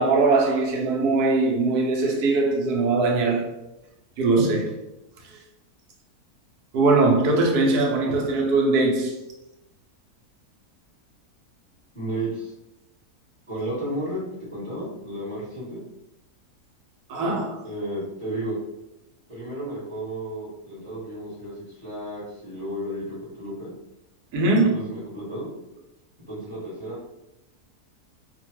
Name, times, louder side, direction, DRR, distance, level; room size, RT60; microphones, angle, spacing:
voice 1, 0.0-3.5 4.2-4.7 5.2-5.4 6.7-9.1 17.1-17.6 24.3-24.7, right 3 dB, 80° right, 1.1 m, -21 dB
voice 2, 11.9-12.5 13.5-14.2 14.5-15.8 17.6-18.6 19.3-23.7 24.5-25.5 26.3-27.2, right 1 dB, 35° right, 1.3 m, -33 dB
2.9 x 2.2 x 2.9 m
omnidirectional pair, 1.7 m